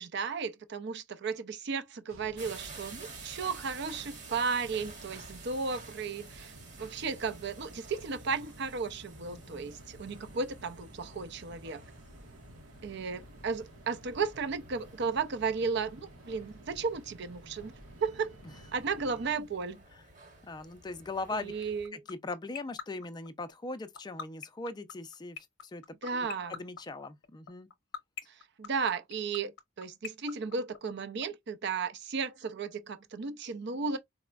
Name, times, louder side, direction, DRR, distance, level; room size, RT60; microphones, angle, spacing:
voice 1, 0.0-11.8 12.8-17.7 18.0-18.3 18.7-19.8 21.3-22.0 26.0-26.6 28.6-29.5 29.8-34.0, right 5 dB, 55° right, 0.5 m, -34 dB
sound 1, 2.1-19.3, right 1 dB, 85° right, 0.8 m, -52 dB
sound 2, 2.4-21.9, right 3 dB, 40° right, 1.1 m, -52 dB
voice 2, 9.3-9.7 20.5-21.5 21.9-25.4 25.7-25.8 26.1-27.7, left 3 dB, 20° left, 0.4 m, -40 dB
sound 3, 21.6-31.2, left 8 dB, 60° left, 0.6 m, -39 dB
4.1 x 2.1 x 2.2 m
head